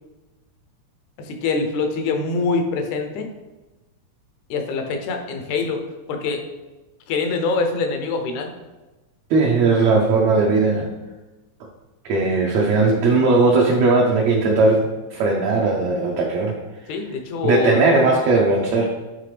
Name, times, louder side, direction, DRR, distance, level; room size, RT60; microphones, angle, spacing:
voice 1, 1.2-3.3 4.5-5.8 6.1-6.4 7.1-8.5 16.9-17.8, left 4 dB, 80° left, 4 dB, 2.1 m, -24 dB
voice 2, 9.3-10.9 12.1-16.5 17.4-18.9, right 3 dB, 70° right, -2 dB, 1.8 m, -18 dB
9.2 x 3.6 x 3.3 m, 1.1 s
omnidirectional pair, 3.3 m